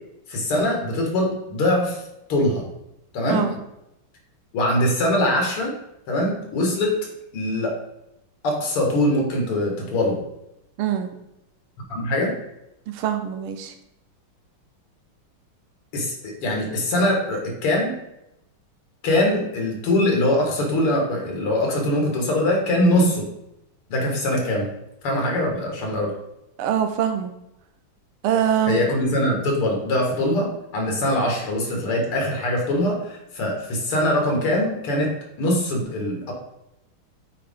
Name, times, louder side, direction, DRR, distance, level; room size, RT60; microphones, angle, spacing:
voice 1, 0.3-2.0 2.3-2.6 3.1-3.5 4.5-5.8 6.1-7.0 7.3-7.8 8.4-10.2 11.9-12.3 15.9-17.9 19.0-23.3 23.9-24.7 25.0-26.1 28.7-36.3, left 1 dB, 85° left, 0 dB, 2.5 m, -22 dB
voice 2, 10.8-11.1 12.9-13.7 26.6-27.3 28.2-28.8, right 9 dB, 85° right, 6 dB, 1.6 m, -23 dB
8.0 x 4.7 x 3.6 m, 0.86 s
omnidirectional pair, 2.4 m